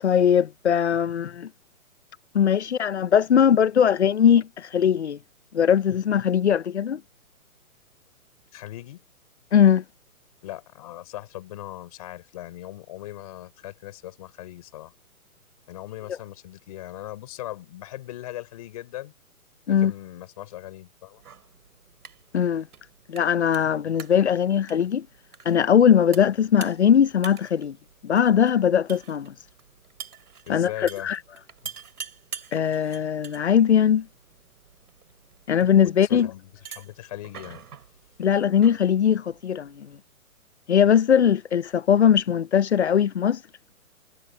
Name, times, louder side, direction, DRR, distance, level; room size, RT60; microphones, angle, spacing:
voice 1, 0.0-1.5 2.3-5.2 5.5-7.0 9.5-9.8 19.7-19.9 22.3-22.7 23.1-25.1 25.5-27.8 28.0-29.3 30.5-31.2 32.5-34.1 35.5-36.3 38.2-39.9 40.7-43.4, left 8 dB, 50° left, 0.6 m, -20 dB
voice 2, 8.5-9.0 10.4-14.9 15.7-19.1 19.8-21.2 30.5-31.1 35.8-37.7, left 14 dB, 25° left, 4.3 m, -39 dB
sound 1, 21.1-40.0, right 7 dB, 85° right, 3.3 m, -46 dB
hypercardioid pair, 180°, 44 cm